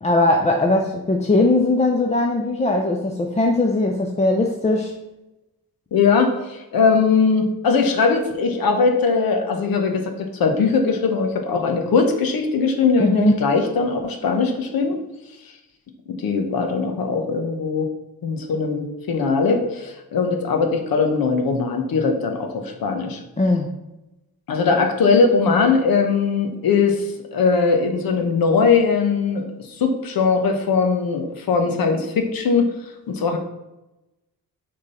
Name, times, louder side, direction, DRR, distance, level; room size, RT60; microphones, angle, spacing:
voice 1, 0.0-4.9 13.0-13.3 23.4-23.7, left 2 dB, 20° left, 2 dB, 0.5 m, -19 dB
voice 2, 5.9-15.0 16.1-17.9 18.2-23.2 24.5-27.0 27.3-29.4 29.8-32.7 33.1-33.4, left 4 dB, 80° left, 4 dB, 1.1 m, -20 dB
6.8 x 3.8 x 5.5 m, 0.97 s
wide cardioid pair, 125°, 35 cm